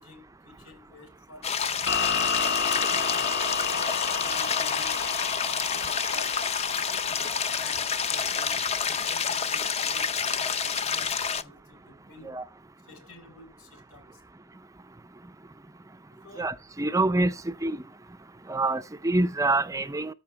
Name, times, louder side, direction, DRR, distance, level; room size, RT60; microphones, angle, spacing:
voice 1, 0.0-1.6 2.9-5.1 5.7-6.5 7.1-12.4 12.8-14.2 16.1-16.5, left 2 dB, 90° left, 3.9 m, -50 dB
sound 1, 1.4-11.4, left 6 dB, 30° left, 0.6 m, -28 dB
sound 2, 1.9-9.0, left 5 dB, 50° left, 1.0 m, -31 dB
voice 2, 16.4-17.3 17.6-17.8 18.5-20.1, right 2 dB, 15° right, 0.5 m, -26 dB
13.5 x 5.8 x 4.5 m
head